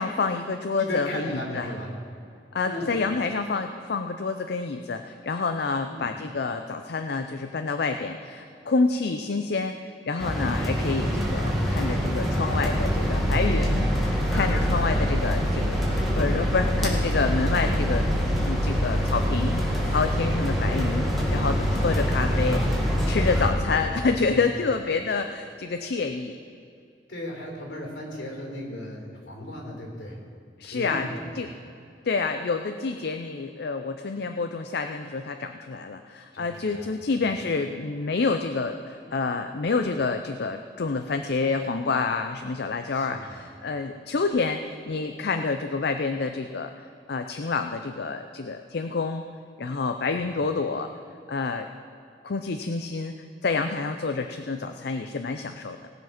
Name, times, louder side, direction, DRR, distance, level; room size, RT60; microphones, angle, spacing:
voice 1, 0.0-1.7 2.5-15.8 16.2-18.1 18.4-22.6 23.1-26.3 30.6-31.1 31.4-31.5 32.0-49.2 49.6-50.9 51.3-51.7 52.2-53.1 53.4-55.9, left 4 dB, 65° left, 7 dB, 0.5 m, -28 dB
voice 2, 0.8-1.9 2.6-2.9 5.9-6.1 14.9-15.2 21.8-22.7 23.4-24.5 27.1-30.2 30.6-31.6 36.3-37.4 42.9-43.4 50.2-50.4, left 1 dB, 85° left, 0 dB, 4.0 m, -36 dB
sound 1, 10.2-23.5, equal, ahead, 2.2 m, -24 dB
19.0 x 7.3 x 5.9 m, 2.5 s
head